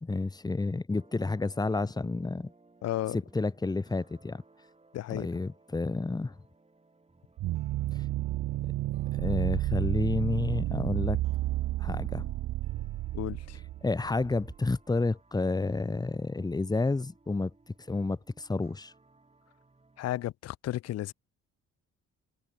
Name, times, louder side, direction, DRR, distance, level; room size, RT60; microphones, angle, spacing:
voice 1, 0.0-2.5 3.1-4.4 5.1-6.4 7.9-8.1 9.1-11.2 11.8-12.3 13.8-17.5 17.9-18.9, left 3 dB, 15° left, 0.8 m, -30 dB
sound 1, 0.9-20.3, right 3 dB, 20° right, 6.3 m, -61 dB
voice 2, 2.8-3.2 4.9-5.3 13.1-13.6 20.0-21.1, left 14 dB, 55° left, 0.5 m, -33 dB
sound 2, 7.4-14.5, right 16 dB, 80° right, 0.8 m, -31 dB
cardioid pair, 90°, 30 cm